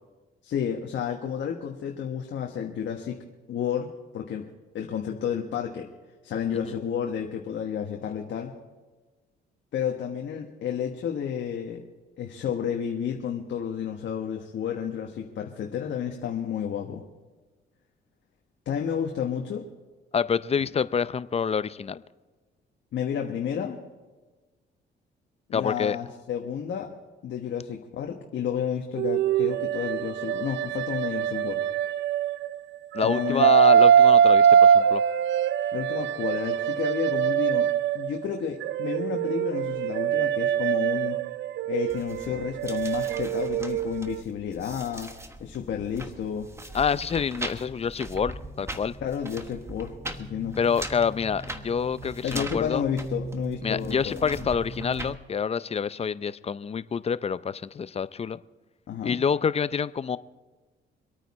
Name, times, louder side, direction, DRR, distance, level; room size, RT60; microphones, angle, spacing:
voice 1, 0.4-3.2 3.5-4.5 4.7-5.9 6.2-8.5 9.7-11.8 12.2-17.0 18.6-19.7 22.9-23.8 25.5-26.9 27.2-31.6 33.0-33.5 35.7-37.7 37.9-41.2 41.7-45.1 45.4-46.5 49.0-50.6 52.2-54.2 58.9-59.2, left 8 dB, 65° left, 2 dB, 1.3 m, -31 dB
voice 2, 20.1-22.0 25.5-26.0 32.9-35.0 46.7-49.0 50.6-52.8 53.6-58.4 59.0-60.2, left 6 dB, 30° left, 16 dB, 0.5 m, -27 dB
sound 1, 29.0-32.5 33.0-38.2 38.6-44.2, right 8 dB, 65° right, 0.4 m, -22 dB
sound 2, 41.9-55.2, right 1 dB, 15° right, 1.2 m, -39 dB
25.0 x 9.1 x 4.2 m, 1.2 s
cardioid pair, 90°, 20 cm